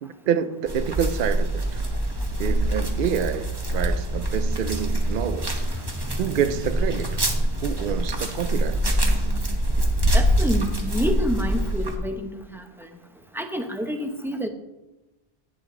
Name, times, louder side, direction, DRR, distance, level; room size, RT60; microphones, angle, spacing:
voice 1, 0.0-1.8 2.4-7.2 7.6-9.0, right 9 dB, 65° right, 0.7 m, -28 dB
sound 1, 0.7-12.0, right 1 dB, 25° right, 1.1 m, -25 dB
sound 2, 1.4-7.8, equal, 75° left, 2.6 m, -33 dB
voice 2, 10.1-12.9 13.3-14.5, equal, ahead, 0.8 m, -28 dB
9.8 x 8.8 x 3.8 m
omnidirectional pair, 1.0 m